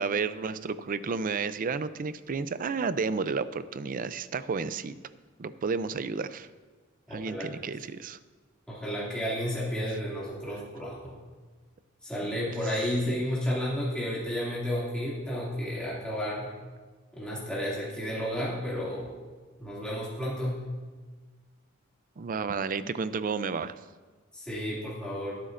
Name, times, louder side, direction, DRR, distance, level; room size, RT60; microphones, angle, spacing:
voice 1, 0.0-4.9 5.4-6.5 7.1-8.2 12.2-12.3 13.1-13.2 22.2-23.7, right 5 dB, 40° right, 13 dB, 0.4 m, -31 dB
voice 2, 7.1-7.5 8.7-11.2 12.0-16.5 17.2-19.1 19.6-20.6 24.3-25.3, equal, 5° left, -8 dB, 2.4 m, -32 dB
22.0 x 8.3 x 2.6 m, 1.3 s
head